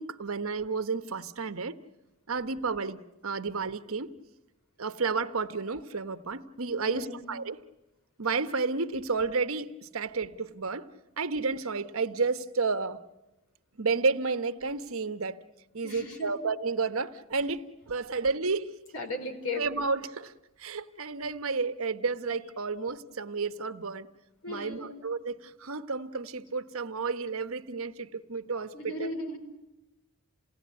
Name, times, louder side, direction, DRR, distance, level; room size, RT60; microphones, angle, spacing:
voice 1, 0.0-1.8 2.3-4.1 4.8-7.6 8.2-10.9 11.2-13.0 13.8-15.4 15.7-18.7 19.6-20.3 20.6-24.1 24.5-29.1, right 4 dB, 70° right, 1.1 m, -31 dB
voice 2, 6.8-7.2 15.8-16.3 17.4-17.5 18.9-19.7 24.4-24.9 28.7-29.4, left 2 dB, 90° left, 4.7 m, -36 dB
28.0 x 18.0 x 9.6 m
head